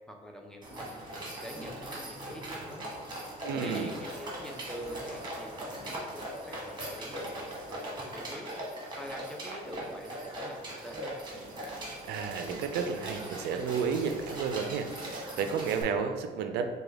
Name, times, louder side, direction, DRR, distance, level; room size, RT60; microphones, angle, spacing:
voice 1, 0.1-0.9 1.4-2.9 3.6-7.4 7.7-8.5 9.0-11.2, right 1 dB, 5° left, 2 dB, 0.5 m, -44 dB
sound 1, 0.6-15.8, right 1 dB, 25° right, 1.2 m, -40 dB
voice 2, 3.4-3.9 12.1-16.7, right 6 dB, 75° right, 7 dB, 0.4 m, -32 dB
4.8 x 2.3 x 3.3 m, 1.5 s
cardioid pair, 110°, 17 cm